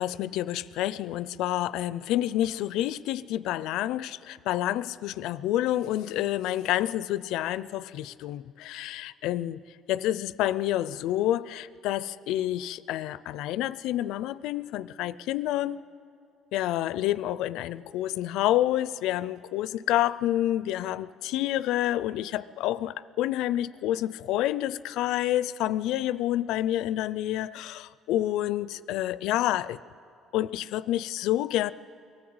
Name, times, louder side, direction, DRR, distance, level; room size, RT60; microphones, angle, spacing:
voice 1, 0.0-9.6 9.9-15.9 16.5-29.8 30.3-31.7, left 13 dB, 80° left, 0.4 m, -28 dB
22.5 x 14.5 x 7.8 m
cardioid pair, 95°, 0 cm